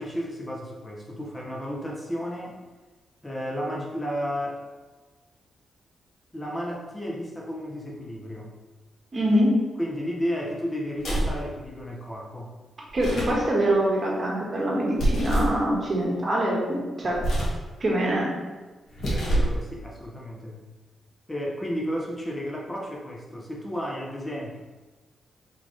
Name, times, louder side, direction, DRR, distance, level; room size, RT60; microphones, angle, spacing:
voice 1, 0.0-2.6 3.2-4.6 6.3-8.5 9.8-12.5 17.0-17.1 18.0-18.1 19.0-20.6 21.3-24.6, equal, 20° left, -2 dB, 0.6 m, -33 dB
voice 2, 9.1-9.6 12.9-17.2 17.8-18.3, right 1 dB, 40° right, -3 dB, 1.2 m, -24 dB
sound 1, 11.0-11.4 12.9-13.4 15.0-15.6 17.1-17.6 18.9-19.6, right 1 dB, 70° left, 1.4 m, -25 dB
4.0 x 3.6 x 3.1 m, 1.2 s
cardioid pair, 90°, 0 cm